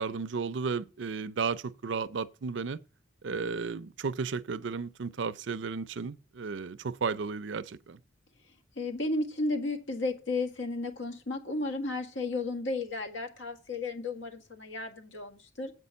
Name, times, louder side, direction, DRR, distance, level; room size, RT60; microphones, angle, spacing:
voice 1, 0.0-2.8 3.2-8.0, right 5 dB, 70° right, 0.5 m, -34 dB
voice 2, 8.8-15.7, left 2 dB, 75° left, 1.8 m, -33 dB
8.1 x 5.3 x 6.9 m
head